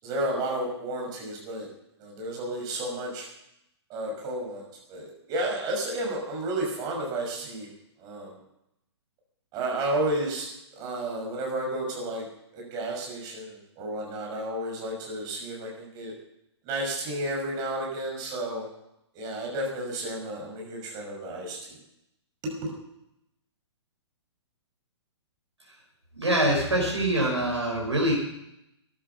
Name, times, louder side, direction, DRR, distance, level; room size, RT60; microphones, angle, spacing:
voice 1, 0.0-1.7 2.0-3.3 3.9-7.7 8.0-8.4 9.5-12.2 12.5-16.1 16.6-18.7 19.1-21.8 22.4-22.7, right 1 dB, 25° right, -1 dB, 5.8 m, -32 dB
voice 2, 26.1-28.1, right 1 dB, 80° right, -2 dB, 5.0 m, -24 dB
13.5 x 11.0 x 6.8 m, 0.81 s
figure-of-eight pair, 120°, 15 cm